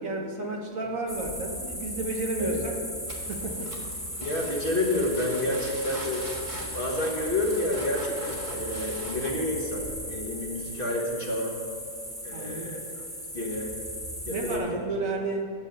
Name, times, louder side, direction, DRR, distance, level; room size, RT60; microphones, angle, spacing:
voice 1, 0.0-2.7 3.3-3.7 12.3-12.8 14.3-15.5, right 2 dB, 60° right, 1 dB, 1.4 m, -32 dB
sound 1, 1.1-14.6, equal, 5° left, 1.1 m, -37 dB
sound 2, 3.1-9.3, right 1 dB, 20° right, 1.4 m, -42 dB
voice 2, 4.2-6.2 6.7-11.5 12.2-12.8 13.3-13.7 14.3-14.8, left 1 dB, 35° left, -2 dB, 1.4 m, -29 dB
10.5 x 7.0 x 6.6 m, 2.4 s
omnidirectional pair, 1.7 m